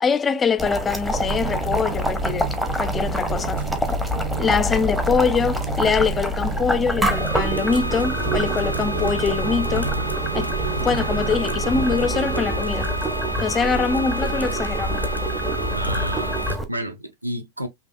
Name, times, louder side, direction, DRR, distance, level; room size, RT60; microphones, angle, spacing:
voice 1, 0.0-2.5 2.8-3.6 4.4-9.9 10.3-10.5 10.8-12.9 13.4-15.1, left 5 dB, 20° left, 0.4 m, -23 dB
Boiling, 0.6-16.7, equal, ahead, 0.8 m, -26 dB
sound 1, 1.2-12.4, right 9 dB, 55° right, 0.4 m, -33 dB
sound 2, 7.1-16.5, right 2 dB, 90° left, 0.4 m, -30 dB
voice 2, 15.7-17.7, equal, 85° right, 0.7 m, -31 dB
5.5 x 2.8 x 2.4 m
figure-of-eight pair, 90°, 0 cm